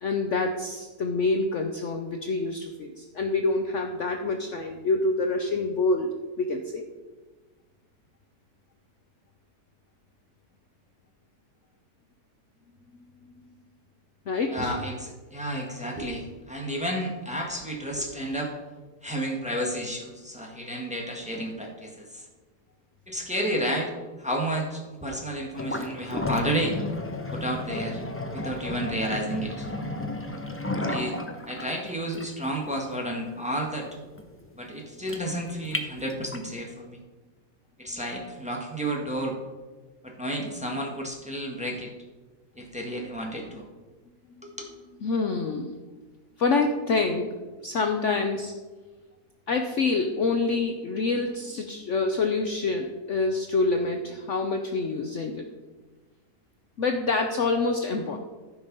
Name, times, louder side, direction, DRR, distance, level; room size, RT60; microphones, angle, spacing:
voice 1, 0.0-6.1 6.4-6.8 14.3-14.7 45.0-45.7 46.4-47.3 47.6-48.5 49.5-55.4 56.8-58.2, left 3 dB, 55° left, 4 dB, 1.0 m, -26 dB
voice 2, 14.5-18.6 19.0-22.2 23.1-23.9 24.2-26.8 27.3-28.0 28.3-29.7 30.9-31.2 31.4-33.9 34.6-37.0 37.8-39.3 40.0-41.9 42.6-43.6 44.4-44.7, right 1 dB, 5° right, -1 dB, 1.5 m, -31 dB
sound 1, 25.5-36.6, left 2 dB, 15° left, 0.4 m, -34 dB
14.0 x 5.7 x 5.4 m, 1.3 s
omnidirectional pair, 1.8 m